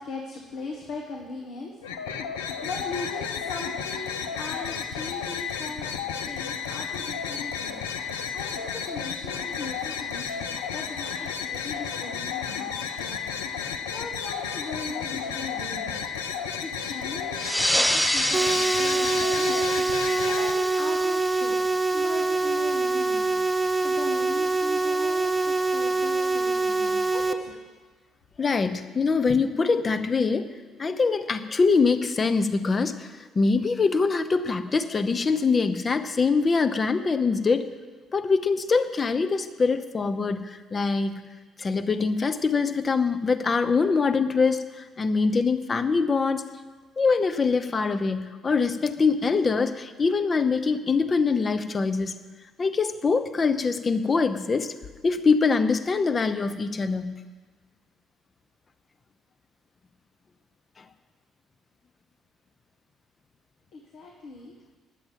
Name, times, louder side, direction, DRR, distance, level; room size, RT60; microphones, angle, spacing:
voice 1, 0.0-1.7 2.5-5.9 6.2-16.0 16.3-21.5 21.9-27.6 63.7-64.5, left 3 dB, 70° left, -1 dB, 1.6 m, -39 dB
sound 1, 1.8-20.5, left 7 dB, 85° left, 0.7 m, -32 dB
sound 2, 17.4-22.4, equal, ahead, 0.4 m, -28 dB
sound 3, 18.3-27.3, right 3 dB, 25° right, 1.0 m, -25 dB
voice 2, 28.4-30.5 30.8-37.7 38.1-41.1 41.6-46.4 47.0-52.2 52.6-54.7 55.0-57.2 60.8-60.9, left 4 dB, 35° left, 9 dB, 0.9 m, -24 dB
10.0 x 7.8 x 9.0 m, 1.4 s
hypercardioid pair, 50°, 0 cm